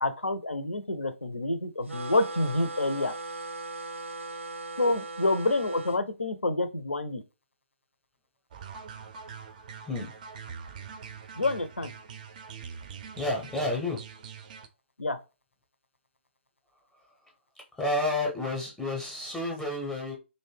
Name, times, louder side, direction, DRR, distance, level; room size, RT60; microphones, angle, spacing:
voice 1, 0.0-3.1 4.8-7.2 11.4-11.9 15.0-15.2, left 2 dB, 80° left, 0.5 m, -28 dB
sound 1, 1.9-6.0, right 3 dB, 80° right, 0.6 m, -38 dB
sound 2, 8.5-14.7, right 6 dB, 40° right, 0.4 m, -44 dB
voice 2, 13.2-14.0 16.9-17.3 17.7-20.1, left 2 dB, 5° left, 0.6 m, -31 dB
2.5 x 2.1 x 3.2 m
figure-of-eight pair, 130°, 7 cm